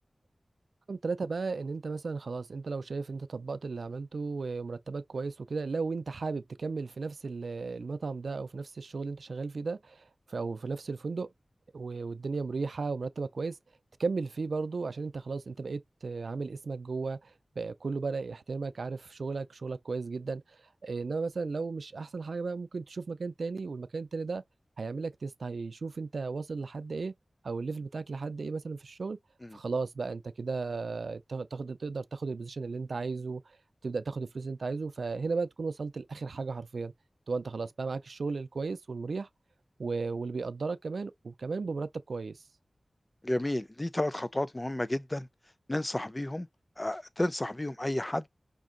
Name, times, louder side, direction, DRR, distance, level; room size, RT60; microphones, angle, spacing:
voice 1, 0.9-11.3 11.7-13.6 14.0-24.4 24.8-27.1 27.4-29.2 29.5-33.6 33.8-36.9 37.3-39.3 39.8-42.4, right 4 dB, 80° right, 0.4 m, -35 dB
voice 2, 43.2-45.3 45.7-46.5 46.8-48.3, left 1 dB, 20° left, 0.5 m, -32 dB
5.2 x 2.7 x 3.8 m
wide cardioid pair, 85°, 0 cm